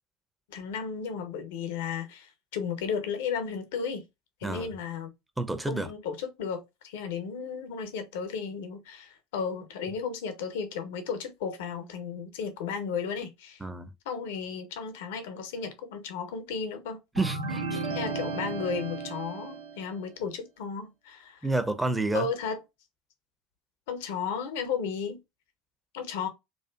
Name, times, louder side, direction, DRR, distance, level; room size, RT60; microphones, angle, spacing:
voice 1, 0.5-4.1 4.4-5.1 5.7-13.6 14.1-17.0 17.9-21.5 22.1-22.6 23.9-25.2 25.9-26.3, left 6 dB, 70° left, 0.6 m, -34 dB
voice 2, 4.4-4.7 5.4-5.9 13.6-13.9 17.1-17.8 21.4-22.3, right 2 dB, 10° right, 0.5 m, -29 dB
sound 1, 17.2-20.0, right 4 dB, 85° right, 0.6 m, -34 dB
2.5 x 2.4 x 2.3 m
hypercardioid pair, 80°, 0 cm